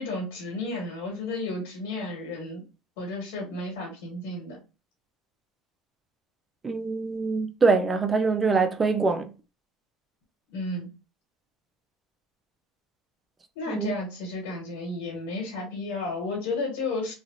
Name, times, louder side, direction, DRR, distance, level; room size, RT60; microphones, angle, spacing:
voice 1, 0.0-2.6 3.0-4.6 10.5-10.9 13.6-17.1, left 2 dB, 80° left, 1.7 m, -33 dB
voice 2, 6.6-9.3 13.7-13.9, right 4 dB, 20° right, 0.5 m, -24 dB
3.1 x 2.5 x 2.6 m
supercardioid pair, 120°, 0 cm